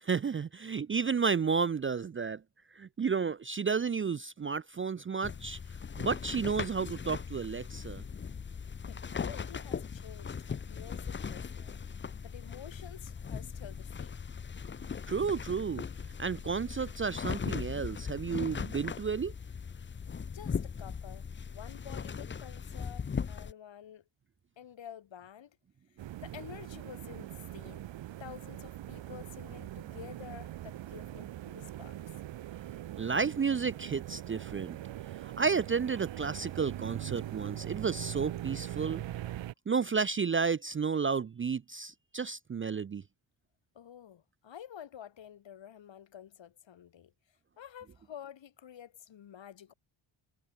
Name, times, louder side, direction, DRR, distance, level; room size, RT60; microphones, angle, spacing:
voice 1, 0.0-2.4 2.8-5.6 6.0-8.0 15.1-15.8 16.2-19.3 33.0-34.8 35.2-39.0 39.7-43.0, right 5 dB, 25° right, 0.5 m, -32 dB
sound 1, 5.2-23.5, left 6 dB, 25° left, 0.6 m, -39 dB
voice 2, 8.9-11.8 12.2-14.2 20.3-24.0 24.6-25.6 25.9-27.9 28.2-32.0 43.7-47.1 47.6-49.7, left 9 dB, 65° left, 3.9 m, -50 dB
sound 2, 26.0-39.5, right 13 dB, 65° right, 0.9 m, -42 dB
wide cardioid pair, 135°, 48 cm